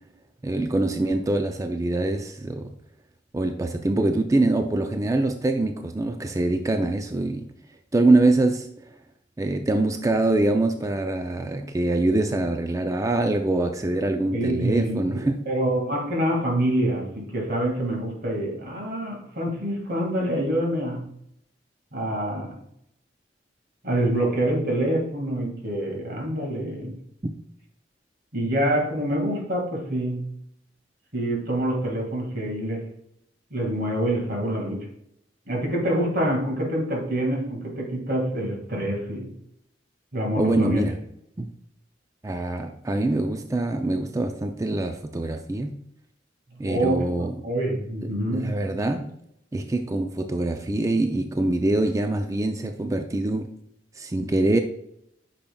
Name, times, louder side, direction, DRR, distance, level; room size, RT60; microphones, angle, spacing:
voice 1, 0.4-2.8 3.3-7.5 7.9-8.7 9.4-15.4 40.4-41.0 41.4-41.5 42.2-45.8 46.6-47.3 48.3-49.1 49.5-53.5 54.0-54.6, right 2 dB, 20° right, 6 dB, 0.4 m, -24 dB
voice 2, 14.3-21.1 21.9-22.5 23.8-26.9 28.3-30.3 31.1-32.8 33.5-34.9 35.5-39.3 40.1-40.8 46.6-48.5, right 1 dB, 60° right, 0 dB, 1.9 m, -26 dB
8.6 x 5.8 x 2.3 m, 0.75 s
head